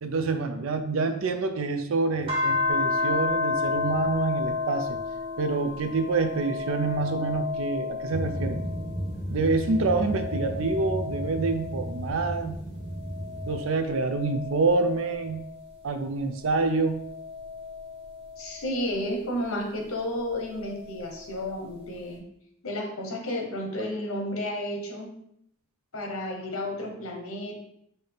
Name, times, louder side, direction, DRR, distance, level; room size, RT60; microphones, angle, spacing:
voice 1, 0.0-5.0 5.4-8.6 9.3-12.6 13.5-15.4 15.8-17.0, right 3 dB, 70° right, 8 dB, 0.5 m, -27 dB
sound 1, 2.3-9.0 9.4-12.3 12.9-15.7 16.5-18.9 20.3-21.3, left 4 dB, 25° right, 0.8 m, -32 dB
sound 2, 8.1-13.6, equal, 5° left, 0.9 m, -34 dB
voice 2, 18.4-22.2 22.6-25.1 25.9-27.6, left 1 dB, 75° left, 1 dB, 1.0 m, -32 dB
5.5 x 2.7 x 3.5 m, 0.74 s
head